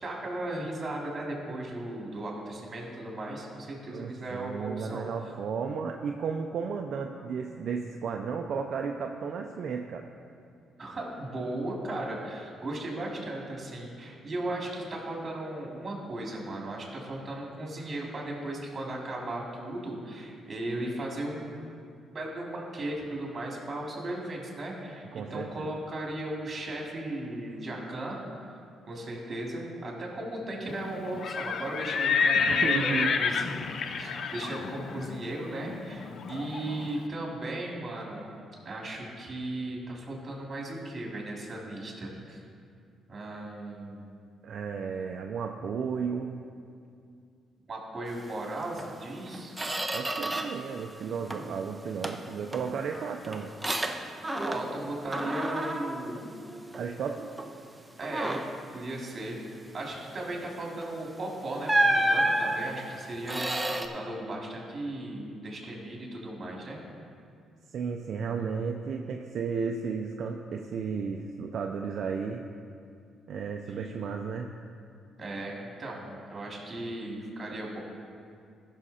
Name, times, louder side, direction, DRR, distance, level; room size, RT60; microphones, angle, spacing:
voice 1, 0.0-5.1 10.8-21.8 22.1-28.2 28.9-38.3 38.6-42.4 43.1-44.1 47.7-49.5 54.4-56.3 58.0-58.4 58.7-59.4 59.7-66.8 73.7-73.9 75.2-77.8, right 1 dB, 35° right, -2 dB, 2.7 m, -36 dB
voice 2, 3.9-10.1 25.1-25.7 32.5-33.2 44.4-46.4 49.9-53.5 56.7-57.3 67.7-72.4 73.3-74.5, right 6 dB, 65° right, 3 dB, 0.5 m, -33 dB
Livestock farm animals working animals, 31.1-36.9, left 5 dB, 60° left, 0.5 m, -29 dB
Squeak, 48.8-48.9 49.3-50.7 51.0-51.6 52.0-54.8 55.1-57.0 57.4-57.6 58.0-58.7 60.8-61.0 61.7-63.9, right 1 dB, 15° right, 0.7 m, -30 dB
14.5 x 6.4 x 4.2 m, 2.3 s
cardioid pair, 90°, 0 cm